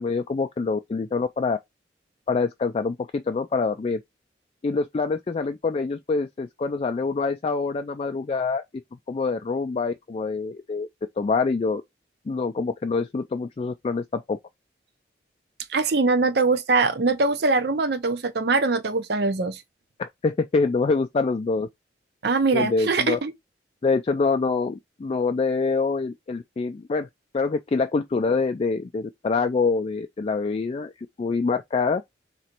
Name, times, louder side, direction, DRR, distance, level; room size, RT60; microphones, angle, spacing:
voice 1, 0.0-1.6 2.3-4.0 4.6-8.6 9.1-10.9 11.2-11.8 12.3-14.4 20.0-21.7 22.5-23.2 23.8-27.1 27.3-32.0, left 4 dB, 35° left, 0.3 m, -25 dB
voice 2, 15.7-19.6 22.2-23.3, right 3 dB, 60° right, 0.6 m, -22 dB
3.8 x 3.0 x 4.4 m
head